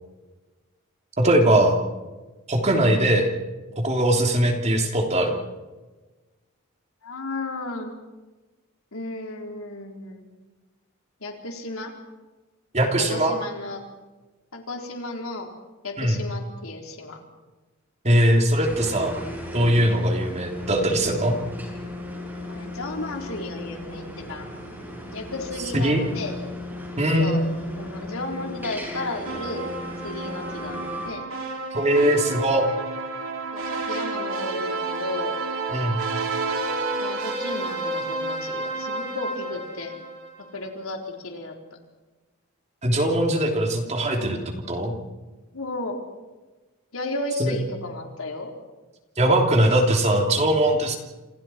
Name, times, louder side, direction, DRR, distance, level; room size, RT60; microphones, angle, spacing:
voice 1, 1.2-1.8 2.5-3.3 3.8-5.4 12.7-13.4 16.0-16.2 18.0-19.1 19.5-21.4 25.7-26.0 27.0-27.3 31.7-32.7 35.7-36.0 42.8-44.9 47.4-47.5 49.2-51.0, right 1 dB, 30° right, 2 dB, 3.3 m, -21 dB
voice 2, 7.0-7.9 8.9-10.3 11.2-11.9 13.0-13.8 14.5-15.5 15.8-17.2 22.5-24.5 25.1-26.3 27.2-27.4 27.8-29.7 30.0-31.3 33.5-35.3 37.0-39.9 40.4-41.8 45.5-46.0 46.9-48.5, left 2 dB, 75° left, 2 dB, 4.2 m, -33 dB
sound 1, 18.6-31.1, left 1 dB, 10° right, 6.3 m, -36 dB
sound 2, 29.3-40.5, right 3 dB, 80° right, 5.5 m, -30 dB
29.0 x 27.0 x 4.6 m, 1.2 s
head